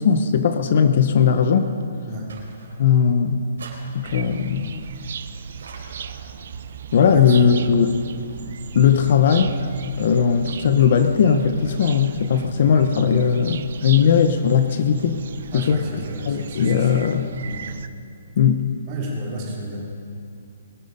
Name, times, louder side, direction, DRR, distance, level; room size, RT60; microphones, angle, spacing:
voice 1, 0.0-1.7 2.8-3.4 3.9-4.8 6.9-8.0 8.7-9.5 10.0-15.2 15.5-15.8 16.3-17.3 18.4-18.7, left 7 dB, 45° left, 8 dB, 0.8 m, -18 dB
sound 1, 2.3-3.1 3.6-4.5 5.6-6.4, right 3 dB, 90° right, 3.6 m, -43 dB
sound 2, 4.0-17.9, right 7 dB, 50° right, 0.6 m, -37 dB
voice 2, 15.5-17.0 17.4-17.6 18.9-19.8, right 1 dB, 25° right, -3 dB, 3.0 m, -34 dB
22.0 x 11.0 x 5.3 m, 2.5 s
hypercardioid pair, 175°, 0 cm